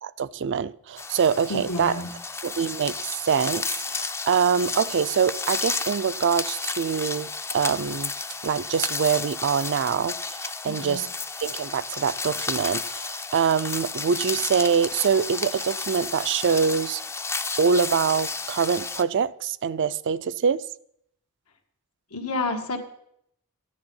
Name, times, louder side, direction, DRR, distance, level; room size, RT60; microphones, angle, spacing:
voice 1, 0.0-2.0 2.4-8.1 8.4-11.1 11.4-17.0 17.6-20.6, right 6 dB, 55° right, 0.4 m, -24 dB
sound 1, 1.0-19.0, left 4 dB, 10° left, 0.4 m, -32 dB
voice 2, 1.5-2.1 10.6-11.0 22.1-22.8, left 2 dB, 90° left, 1.8 m, -29 dB
13.0 x 10.5 x 5.5 m
head